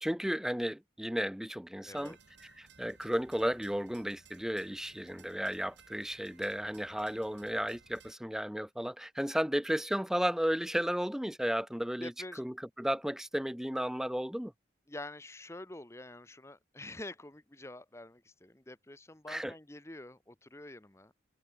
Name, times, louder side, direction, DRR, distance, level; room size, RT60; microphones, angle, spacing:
voice 1, 0.0-2.1 2.4-12.1 12.4-14.5 19.3-19.5, equal, 5° right, 0.5 m, -34 dB
voice 2, 1.9-2.2 12.0-12.4 14.9-21.1, left 2 dB, 15° left, 0.9 m, -47 dB
sound 1, 1.9-8.1, right 5 dB, 75° right, 6.7 m, -60 dB
head